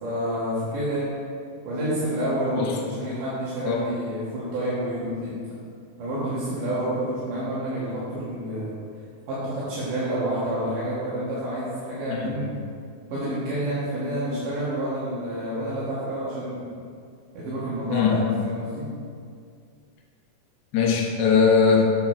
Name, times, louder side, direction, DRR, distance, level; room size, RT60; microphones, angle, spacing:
voice 1, 0.0-1.2 1.7-5.4 6.0-8.7 9.3-12.5 13.1-16.7 17.3-18.9, right 1 dB, 90° right, -10 dB, 3.3 m, -29 dB
voice 2, 17.9-18.2 20.7-21.9, left 5 dB, 80° left, -1 dB, 0.9 m, -20 dB
8.2 x 7.2 x 4.4 m, 2.2 s
omnidirectional pair, 3.6 m